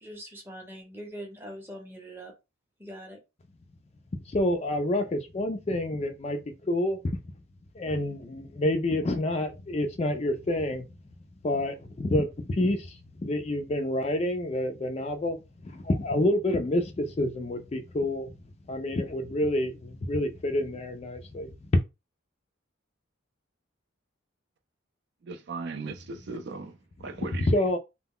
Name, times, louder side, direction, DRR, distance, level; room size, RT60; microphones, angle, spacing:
voice 1, 0.0-2.3 2.8-3.2, equal, 10° right, 0.6 m, -42 dB
voice 2, 4.3-7.2 7.7-10.9 11.4-15.4 15.6-18.3 18.7-21.5 27.5-27.8, left 1 dB, 30° left, 0.3 m, -28 dB
voice 3, 25.2-27.5, right 3 dB, 55° right, 0.4 m, -38 dB
2.2 x 2.0 x 3.6 m
head